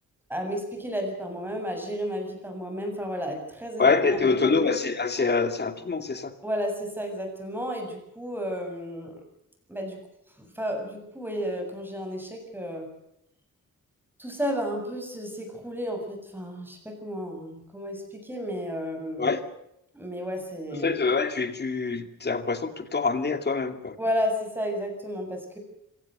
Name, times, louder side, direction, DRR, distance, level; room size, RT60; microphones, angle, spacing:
voice 1, 0.3-4.7 6.4-9.2 9.7-10.0 10.4-12.9 14.2-19.3 19.9-20.9 24.0-25.6, equal, 5° right, 4 dB, 7.5 m, -32 dB
voice 2, 3.8-6.3 19.2-19.4 20.8-23.9, left 4 dB, 30° left, 8 dB, 2.4 m, -25 dB
26.5 x 17.5 x 6.8 m, 0.80 s
wide cardioid pair, 145°, 31 cm